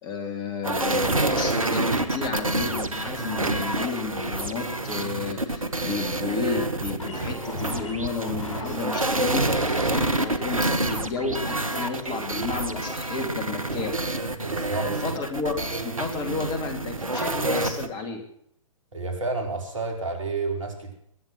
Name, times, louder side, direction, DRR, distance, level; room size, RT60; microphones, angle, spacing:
voice 1, 0.0-13.9 14.5-15.6 15.8-18.2, left 4 dB, 25° left, 5 dB, 2.8 m, -32 dB
sound 1, 0.6-17.9, right 2 dB, 85° right, 1.8 m, -27 dB
sound 2, 4.2-10.1, left 2 dB, 60° left, 7.3 m, -38 dB
voice 2, 14.4-14.9 18.9-20.9, right 3 dB, 70° right, 3 dB, 5.0 m, -30 dB
21.5 x 10.5 x 6.1 m, 0.70 s
figure-of-eight pair, 120°, 17 cm